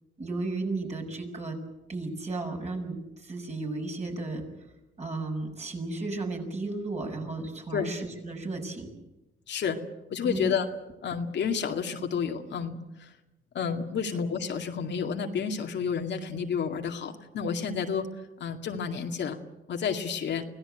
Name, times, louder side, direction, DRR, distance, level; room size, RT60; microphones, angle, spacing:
voice 1, 0.2-1.6 1.9-4.4 5.0-8.9 10.2-10.5, right 3 dB, 35° right, 2 dB, 6.5 m, -34 dB
voice 2, 9.5-9.8 10.1-10.7 11.0-13.1 13.5-18.1 18.4-19.4 19.7-20.4, left 6 dB, 65° left, 4 dB, 2.3 m, -30 dB
24.5 x 17.0 x 9.1 m, 0.99 s
cardioid pair, 90°, 20 cm